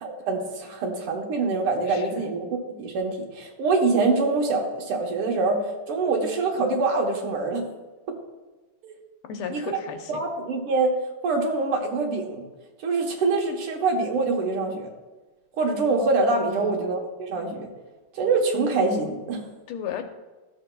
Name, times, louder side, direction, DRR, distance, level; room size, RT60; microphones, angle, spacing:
voice 1, 0.0-2.5 2.8-7.7 8.8-8.9 9.5-9.8 10.1-11.0 11.2-12.4 12.8-14.9 15.6-17.7 18.1-19.5, right 3 dB, 85° right, 2 dB, 2.1 m, -25 dB
voice 2, 1.9-2.3 9.3-10.2 16.5-16.8 19.7-20.0, left 7 dB, 85° left, 6 dB, 1.7 m, -35 dB
13.5 x 6.8 x 2.3 m, 1.2 s
omnidirectional pair, 2.4 m